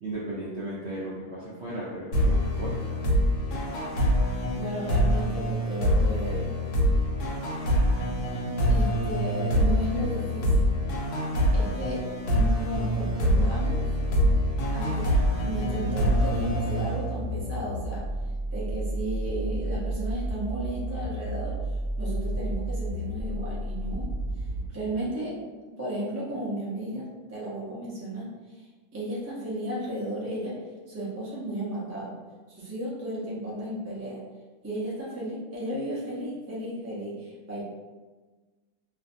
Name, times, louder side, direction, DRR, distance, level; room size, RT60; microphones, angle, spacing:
voice 1, 0.0-3.0, right 1 dB, 65° right, -7 dB, 0.6 m, -36 dB
sound 1, 2.1-17.6, equal, 85° left, 1.1 m, -25 dB
voice 2, 4.6-6.6 8.7-10.7 11.5-13.8 14.7-15.1 15.4-18.0 18.5-21.5 22.0-24.1 24.4-24.5 24.7-25.3 25.7-28.3 28.5-28.7 28.9-30.5 30.9-32.1 32.5-34.2 34.6-37.6, right 1 dB, 25° right, -7 dB, 0.3 m, -34 dB
sound 2, 12.7-24.7, right 1 dB, 55° left, 0.9 m, -32 dB
2.5 x 2.5 x 2.5 m, 1.3 s
omnidirectional pair, 1.6 m